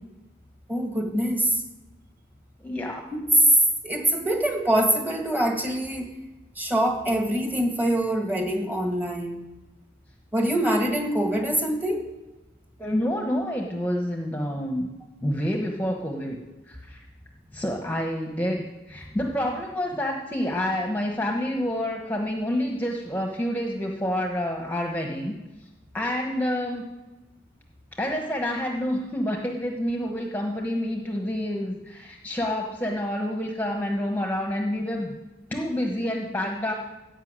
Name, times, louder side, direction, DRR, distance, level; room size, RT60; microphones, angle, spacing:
voice 1, 0.7-1.6 3.1-3.5 3.8-6.1 6.6-9.4 10.3-12.0, right 1 dB, 10° right, 3 dB, 1.8 m, -24 dB
voice 2, 2.6-3.1 12.8-14.9 15.2-17.0 17.5-25.3 25.9-26.9 27.9-35.1 35.5-36.7, left 1 dB, 10° left, 1 dB, 1.2 m, -28 dB
15.0 x 5.8 x 8.9 m, 1.1 s
head